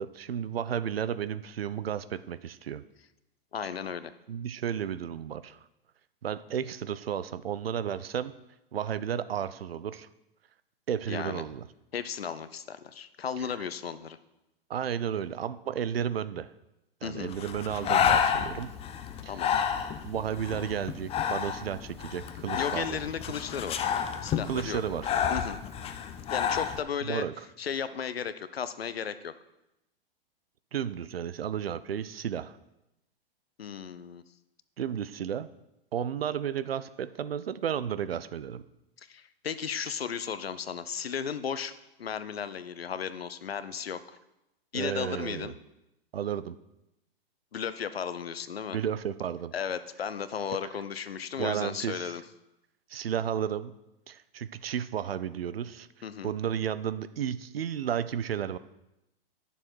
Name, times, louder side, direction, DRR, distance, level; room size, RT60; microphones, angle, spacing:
voice 1, 0.0-2.8 4.3-5.6 6.2-8.3 8.7-10.1 10.9-11.7 14.7-16.5 17.0-18.7 19.2-19.3 20.0-23.0 24.5-25.1 27.0-27.5 30.7-32.6 34.8-35.5 35.9-38.6 44.7-45.5 46.1-46.6 48.7-49.5 51.4-52.1 52.9-53.7 54.1-55.9 56.2-58.6, right 9 dB, 75° right, 15 dB, 0.6 m, -33 dB
voice 2, 3.5-4.1 11.1-11.4 11.9-14.2 17.0-17.3 19.3-19.6 22.6-23.9 24.2-24.8 25.3-25.6 26.3-27.3 27.6-29.3 33.6-34.2 39.0-41.7 42.0-44.2 44.7-45.5 47.5-48.8 49.5-52.2 56.0-56.3, left 7 dB, 80° left, 14 dB, 0.7 m, -35 dB
Breathing, 17.3-26.8, left 8 dB, 20° left, 0.6 m, -30 dB
10.5 x 7.0 x 4.5 m, 0.90 s
figure-of-eight pair, 105°, 30 cm